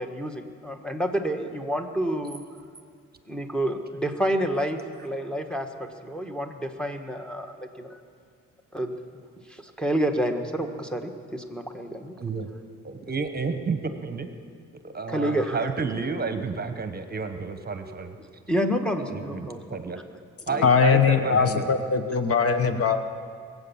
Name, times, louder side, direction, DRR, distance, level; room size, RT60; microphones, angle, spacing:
voice 1, 0.0-2.4 3.3-8.0 8.7-9.0 9.5-12.1 15.1-15.6 18.5-19.8 20.5-20.7, equal, 5° left, 4 dB, 1.4 m, -29 dB
voice 2, 12.2-12.5 12.8-14.3 14.8-18.1 19.1-20.0 20.5-21.8, right 4 dB, 30° right, 8 dB, 1.1 m, -30 dB
voice 3, 20.6-23.0, left 6 dB, 50° left, 9 dB, 1.0 m, -21 dB
21.5 x 8.3 x 7.1 m, 2.2 s
cardioid pair, 90°, 30 cm